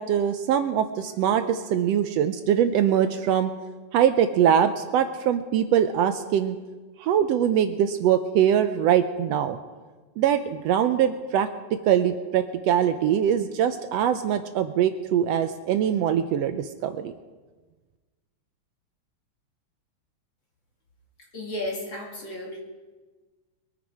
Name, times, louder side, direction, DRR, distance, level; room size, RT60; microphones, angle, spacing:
voice 1, 0.0-3.5 3.9-6.6 7.0-9.6 10.2-11.5 11.8-17.1, right 9 dB, 80° right, 9 dB, 1.5 m, -22 dB
voice 2, 21.3-22.6, left 1 dB, 40° left, -1 dB, 2.8 m, -33 dB
23.0 x 9.7 x 4.8 m, 1.3 s
omnidirectional pair, 3.5 m